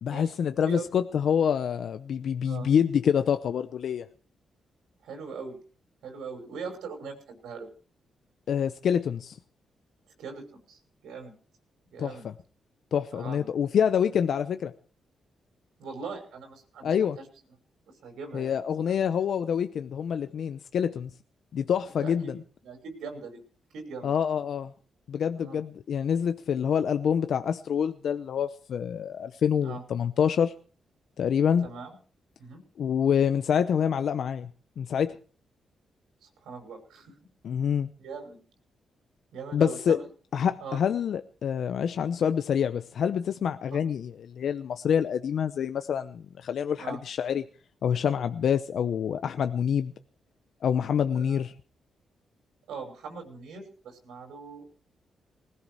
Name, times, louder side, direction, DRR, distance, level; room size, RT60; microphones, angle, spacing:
voice 1, 0.0-4.1 8.5-9.4 12.0-12.3 12.9-14.7 16.8-17.2 18.3-21.1 21.5-22.4 24.0-24.7 25.1-30.5 31.2-31.7 32.8-34.5 34.8-35.2 37.4-37.9 39.5-40.0 40.3-47.4 47.8-49.9 50.6-51.5, left 8 dB, 70° left, 0.8 m, -26 dB
voice 2, 5.0-5.6 6.0-7.7 10.2-11.3 11.9-12.3 13.1-13.5 15.8-17.2 17.9-18.6 18.8-18.9 22.0-22.4 22.6-23.4 23.7-24.1 25.3-25.6 29.6-29.8 31.6-32.0 32.4-32.6 36.2-37.1 38.0-38.4 39.3-40.0 40.6-40.8 43.7-43.8 46.8-47.0 51.1-51.4 52.7-54.7, right 5 dB, 90° right, 6.1 m, -41 dB
20.0 x 14.0 x 4.8 m
cardioid pair, 80°, 0 cm